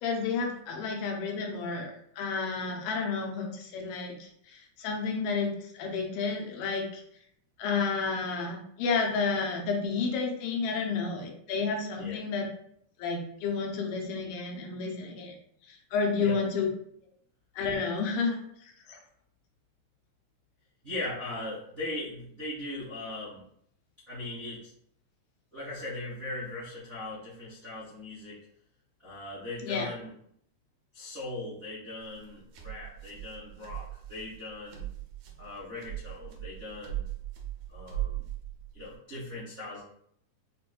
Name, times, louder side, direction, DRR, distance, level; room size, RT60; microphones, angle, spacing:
voice 1, 0.0-7.0 7.6-12.5 13.0-15.3 15.9-16.7 17.6-18.4 18.9-19.0 29.6-29.9, left 4 dB, 90° left, 2 dB, 2.4 m, -31 dB
voice 2, 20.8-23.4 24.1-24.7 25.5-28.4 29.0-30.1 30.9-34.9 35.4-37.0 37.7-38.2 38.7-39.8, left 2 dB, 45° right, -11 dB, 0.7 m, -39 dB
sound 1, 32.0-39.0, right 13 dB, 85° right, 2.3 m, -39 dB
6.3 x 2.5 x 2.2 m, 0.68 s
omnidirectional pair, 3.6 m